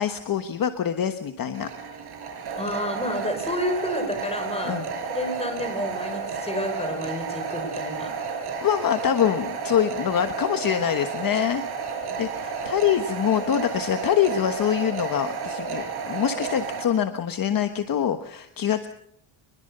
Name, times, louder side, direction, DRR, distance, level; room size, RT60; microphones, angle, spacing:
voice 1, 0.0-1.7 4.6-4.8 8.6-11.6 12.2-18.9, left 9 dB, 45° left, 8 dB, 1.4 m, -24 dB
sound 1, 1.5-16.8, right 5 dB, 55° right, 6.2 m, -32 dB
voice 2, 2.6-4.8 5.1-8.4 12.1-12.2, left 1 dB, 10° left, 6 dB, 6.0 m, -30 dB
25.0 x 22.5 x 6.8 m, 0.70 s
cardioid pair, 155°, 48 cm